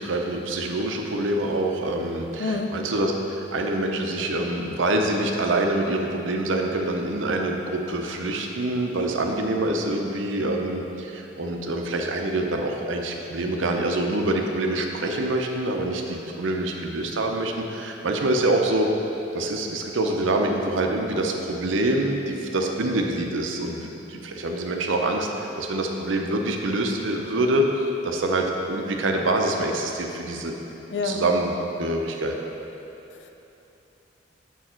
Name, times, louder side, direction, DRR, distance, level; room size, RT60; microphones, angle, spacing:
voice 1, 0.0-18.9 19.3-30.6 31.0-32.4, right 1 dB, 80° right, 2 dB, 0.6 m, -25 dB
voice 2, 2.4-2.7 30.9-31.3 33.1-33.3, left 3 dB, 65° left, 5 dB, 0.5 m, -28 dB
7.1 x 4.6 x 4.4 m, 3.0 s
head